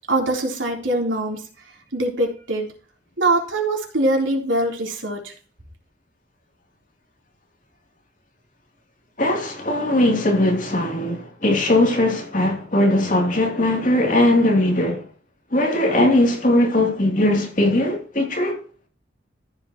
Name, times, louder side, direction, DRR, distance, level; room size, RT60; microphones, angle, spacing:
voice 1, 0.1-2.7 3.2-5.3, right 2 dB, 85° right, 3.5 m, -23 dB
voice 2, 9.2-15.0 15.5-18.6, left 1 dB, 40° left, 3.0 m, -19 dB
14.5 x 7.5 x 3.0 m
head